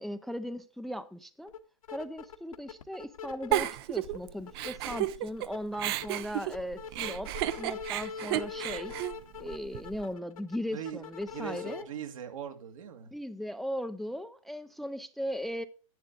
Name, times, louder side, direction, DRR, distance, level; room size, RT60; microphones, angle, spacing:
voice 1, 0.0-1.5 1.9-7.3 7.6-8.9 9.4-11.9 13.1-15.6, equal, ahead, 0.5 m, -38 dB
sound 1, 1.5-3.7 4.0-5.0 5.4-11.8, left 6 dB, 80° left, 1.5 m, -42 dB
Giggle, 3.5-5.5 5.8-10.0, right 14 dB, 45° right, 0.6 m, -33 dB
voice 2, 10.7-11.0 11.3-13.1, right 9 dB, 70° right, 2.2 m, -40 dB
10.5 x 9.6 x 3.8 m
hypercardioid pair, 130°, 18 cm